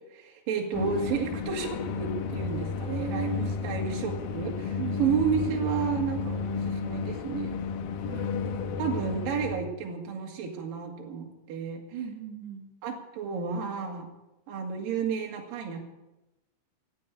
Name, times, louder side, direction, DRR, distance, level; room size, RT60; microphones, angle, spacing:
voice 1, 0.1-7.6 8.8-12.1 12.8-14.1 14.5-15.8, right 6 dB, 60° right, 1 dB, 3.7 m, -31 dB
sound 1, 0.7-9.6, left 5 dB, 70° left, 2.6 m, -32 dB
voice 2, 2.9-3.6 4.8-5.3 8.1-8.7 11.9-12.7, right 7 dB, 80° right, 3 dB, 3.5 m, -38 dB
16.5 x 8.4 x 8.6 m, 0.97 s
omnidirectional pair, 4.9 m